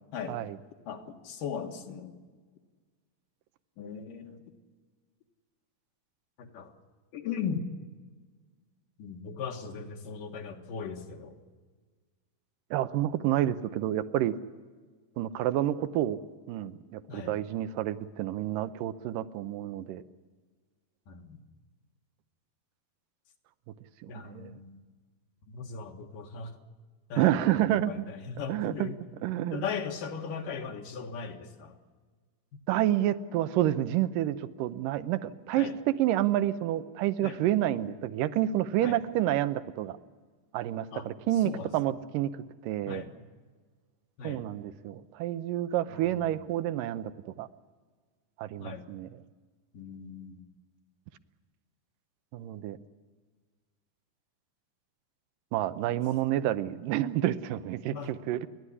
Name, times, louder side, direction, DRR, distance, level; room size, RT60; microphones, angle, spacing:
voice 1, 0.9-2.2 3.8-4.4 6.4-6.7 7.1-7.6 9.0-11.3 17.1-17.4 21.1-21.4 24.1-24.8 25.5-26.5 27.1-29.0 29.5-31.7 35.6-35.7 37.2-37.4 38.8-39.0 40.9-41.1 41.4-41.7 42.9-43.1 44.2-44.5 45.9-46.5 48.6-48.9 49.7-50.5 57.9-58.1, left 6 dB, 75° left, 3 dB, 3.3 m, -38 dB
voice 2, 12.7-14.4 15.2-16.2 16.5-20.0 24.0-24.6 27.2-28.1 28.5-28.9 29.2-29.6 32.7-40.0 40.5-42.4 42.6-43.0 44.2-47.5 48.4-49.2 52.3-52.8 55.5-58.5, right 13 dB, 85° right, 13 dB, 2.4 m, -29 dB
30.0 x 11.5 x 9.8 m, 1.4 s
omnidirectional pair, 3.8 m